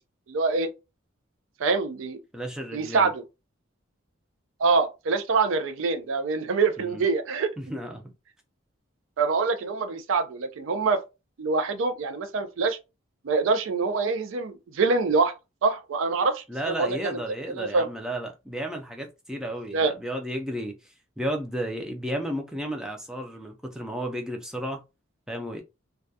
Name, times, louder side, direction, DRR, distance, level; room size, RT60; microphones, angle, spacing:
voice 1, 0.3-0.7 1.6-2.2 2.7-3.2 4.6-7.5 9.2-11.0 11.4-12.8 13.2-15.3 15.6-17.2 17.5-17.9 19.7-19.9, right 4 dB, 75° right, 0.4 m, -25 dB
voice 2, 2.3-3.1 6.8-7.0 7.6-8.0 16.5-24.8 25.3-25.6, equal, 5° right, 0.3 m, -33 dB
2.3 x 2.1 x 2.6 m
head